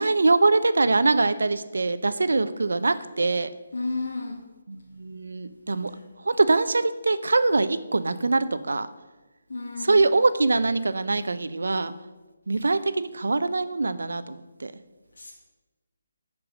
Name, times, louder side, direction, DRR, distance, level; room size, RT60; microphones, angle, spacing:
voice 1, 0.0-3.5 4.7-5.9 6.2-8.9 9.8-11.9 12.5-14.7, right 3 dB, 85° right, 13 dB, 0.6 m, -23 dB
voice 2, 3.7-4.4 5.9-6.0 9.5-10.1 15.2-15.3, left 3 dB, 75° left, -2 dB, 1.9 m, -32 dB
9.7 x 4.8 x 6.2 m, 1.2 s
hypercardioid pair, 170°, 0 cm